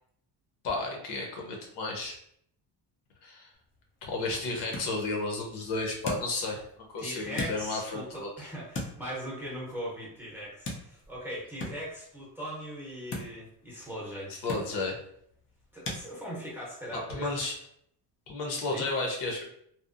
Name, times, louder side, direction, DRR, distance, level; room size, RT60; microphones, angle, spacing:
voice 1, 0.6-2.2 3.2-3.5 4.0-6.6 6.9-8.3 14.3-15.0 16.9-17.5 18.3-19.4, left 3 dB, 70° left, 1 dB, 0.8 m, -32 dB
sound 1, 3.5-16.0, left 2 dB, 35° left, 0.4 m, -43 dB
voice 2, 7.0-14.3 15.7-17.5 18.6-18.9, equal, 5° right, -7 dB, 0.6 m, -39 dB
2.8 x 2.0 x 2.4 m, 0.68 s
cardioid pair, 170°, 41 cm